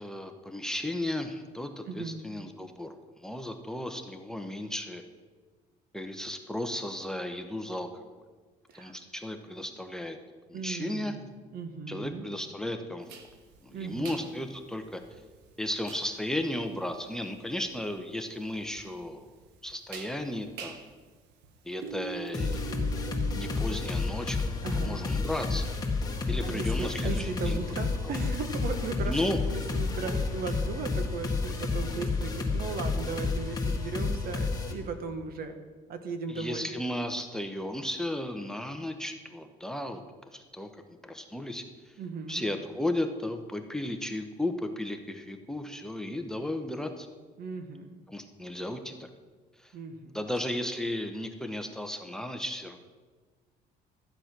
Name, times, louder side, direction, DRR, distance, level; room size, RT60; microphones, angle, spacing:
voice 1, 0.0-5.0 5.9-7.9 8.7-10.2 10.5-11.2 11.9-13.1 13.6-15.0 15.6-19.3 19.6-20.8 21.6-22.7 23.3-25.7 26.3-27.6 28.0-28.2 29.1-29.4 30.0-30.2 36.3-40.0 40.3-42.0 42.3-47.1 48.1-49.1 49.6-49.7 50.1-52.8, left 1 dB, 5° left, 5 dB, 0.9 m, -35 dB
voice 2, 10.5-11.3 11.5-12.3 13.7-14.2 24.6-25.0 26.4-35.5 35.9-36.7 42.0-42.4 47.4-47.9 49.7-50.1, right 4 dB, 65° right, 7 dB, 1.3 m, -37 dB
sound 1, 13.1-30.7, right 8 dB, 85° right, 1.2 m, -48 dB
sound 2, 22.3-34.7, left 3 dB, 25° left, 2.1 m, -30 dB
13.0 x 7.8 x 6.0 m, 1.4 s
cardioid pair, 110°, 17 cm